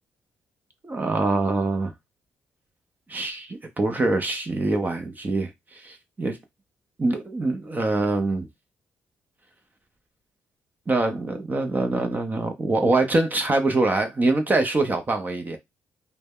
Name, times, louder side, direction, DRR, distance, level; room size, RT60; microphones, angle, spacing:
voice 1, 0.8-1.9 3.1-6.4 7.0-8.5 10.9-15.6, right 2 dB, 30° right, 0.6 m, -24 dB
2.1 x 2.0 x 3.4 m
supercardioid pair, 65°, 6 cm